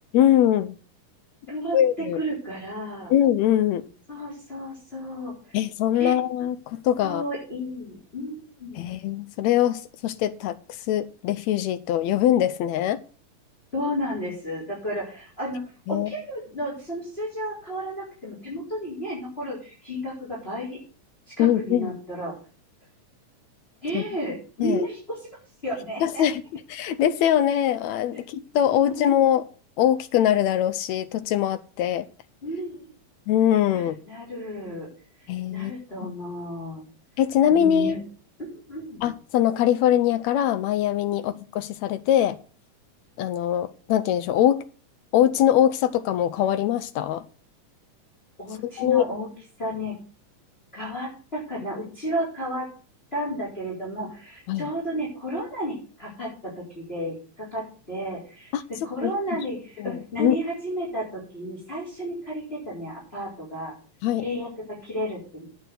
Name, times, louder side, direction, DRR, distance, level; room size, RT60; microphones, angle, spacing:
voice 1, 0.1-0.7 1.7-2.2 3.1-3.9 5.5-7.2 8.8-10.6 10.9-13.0 15.9-16.1 21.4-21.9 23.9-24.0 24.6-24.8 26.0-26.4 26.7-29.4 29.8-32.1 33.3-34.0 35.3-35.7 36.0-36.1 37.2-38.0 39.0-42.4 43.2-44.6 45.1-47.2 48.8-49.1 54.5-54.7 58.5-58.6 59.0-59.1 59.8-60.4 64.0-64.3, left 11 dB, 80° left, 1.6 m, -22 dB
voice 2, 1.5-3.1 4.1-5.6 6.0-6.1 7.0-8.9 13.7-15.6 15.9-20.8 21.4-22.4 23.8-25.3 25.6-26.2 28.7-29.1 32.4-32.8 33.7-34.9 35.5-36.8 37.5-38.0 38.4-39.0 48.4-49.3 49.6-50.0 50.7-52.7 53.1-58.5 58.8-63.7 64.2-65.5, equal, 15° left, 4.3 m, -32 dB
9.1 x 6.1 x 8.0 m
omnidirectional pair, 3.7 m